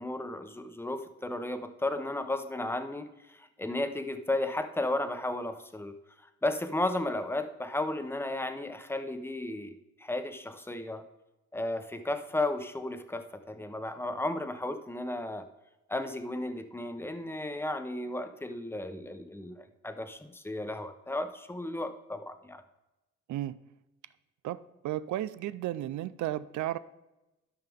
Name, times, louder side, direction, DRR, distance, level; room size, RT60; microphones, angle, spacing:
voice 1, 0.0-5.9 6.4-11.0 11.5-15.5 15.9-22.6, left 1 dB, 10° left, 8 dB, 1.0 m, -34 dB
voice 2, 24.4-26.8, right 13 dB, 70° right, 16 dB, 0.6 m, -34 dB
13.0 x 5.7 x 3.6 m, 0.98 s
cardioid pair, 90°, 30 cm